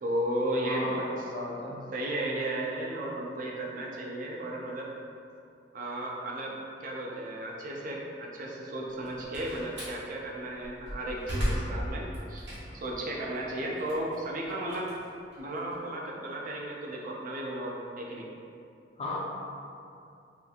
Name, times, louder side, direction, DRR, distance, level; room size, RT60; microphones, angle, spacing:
voice 1, 0.0-1.1 1.9-4.9 5.7-12.5 12.7-14.9 15.4-18.3, right 1 dB, 50° right, -2 dB, 0.4 m, -34 dB
voice 2, 0.7-1.8 19.0-19.2, left 2 dB, 35° left, -5 dB, 0.5 m, -36 dB
Slam, 8.9-10.0 10.6-12.9 13.4-15.7, equal, 85° right, 1.2 m, -35 dB
3.2 x 2.8 x 2.3 m, 2.5 s
head